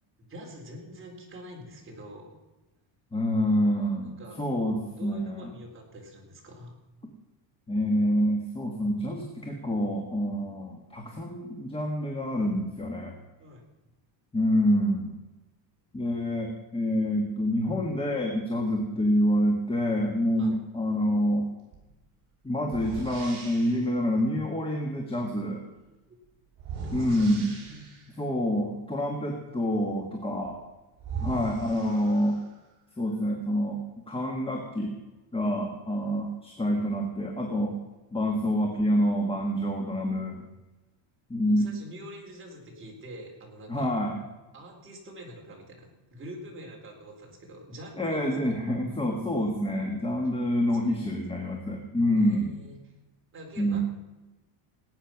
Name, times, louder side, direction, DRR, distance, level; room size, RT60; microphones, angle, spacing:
voice 1, 0.2-2.4 4.0-4.4 5.0-6.8 13.4-13.6 20.4-20.5 26.1-26.2 26.8-27.4 31.3-31.6 41.5-43.9 44.5-48.3 50.8-51.1 52.2-52.9 53.3-53.8, equal, 25° right, -1 dB, 4.1 m, -45 dB
voice 2, 3.1-5.5 7.7-13.1 14.3-15.2 15.9-21.5 22.4-25.6 26.9-27.5 28.2-30.6 31.2-32.4 33.0-33.8 34.1-34.9 35.3-37.8 38.1-40.4 41.3-41.7 43.7-44.2 48.0-52.6 53.6-53.8, equal, 10° left, 1 dB, 1.6 m, -27 dB
sound 1, 21.7-21.9 22.7-23.9 26.6-28.2 30.4-30.5 31.0-32.6, right 4 dB, 55° right, 6.8 m, -39 dB
18.5 x 9.0 x 6.0 m, 1.1 s
cardioid pair, 160°, 50 cm